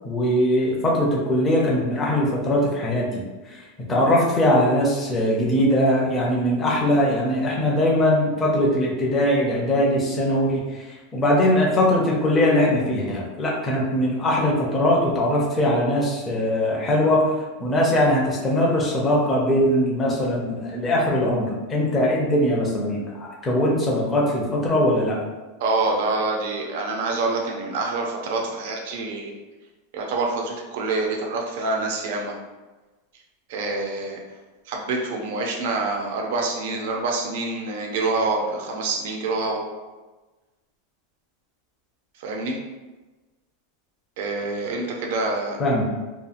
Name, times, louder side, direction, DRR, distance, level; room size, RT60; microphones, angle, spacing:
voice 1, 0.0-3.2 3.9-10.8 11.1-17.3 17.6-25.2 45.6-45.8, left 1 dB, 15° left, -4 dB, 0.4 m, -21 dB
voice 2, 25.6-29.3 29.9-32.3 33.5-34.2 34.7-39.6 42.2-42.6 44.2-45.6, right 3 dB, 55° right, 0 dB, 0.5 m, -26 dB
2.7 x 2.3 x 2.4 m, 1.2 s
supercardioid pair, 170°, 0 cm